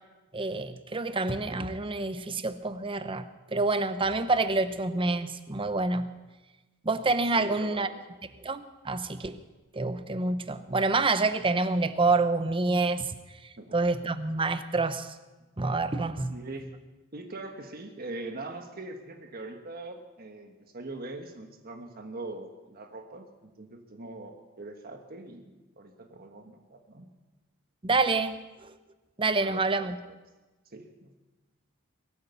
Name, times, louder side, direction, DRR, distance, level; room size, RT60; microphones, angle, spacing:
voice 1, 0.3-6.1 6.8-7.9 8.4-9.4 9.7-13.2 13.7-15.1 15.6-16.4 27.8-28.3 28.6-28.7 29.2-30.0, right 3 dB, 25° right, 11 dB, 0.8 m, -27 dB
voice 2, 7.4-8.0 13.6-13.8 16.3-16.7 17.1-27.1 29.4-29.6 30.0-30.2 30.7-31.1, right 2 dB, 45° right, 4 dB, 1.4 m, -42 dB
22.5 x 9.3 x 6.9 m, 1.2 s
head